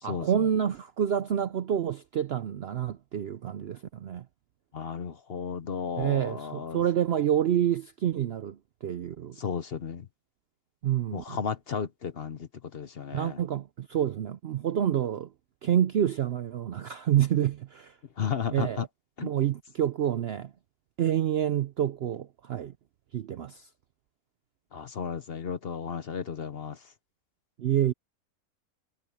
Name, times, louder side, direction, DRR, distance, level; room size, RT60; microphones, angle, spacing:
voice 1, 0.0-4.3 6.0-9.4 10.8-11.4 13.1-15.3 15.6-18.0 18.5-18.9 19.2-20.5 21.0-22.7 23.1-23.7 27.6-27.9, right 10 dB, 65° right, 0.6 m, -28 dB
voice 2, 4.7-6.8 9.4-10.1 11.1-13.4 18.2-18.9 19.2-19.3 24.7-26.8, left 6 dB, 50° left, 0.9 m, -34 dB
omnidirectional pair, 1.6 m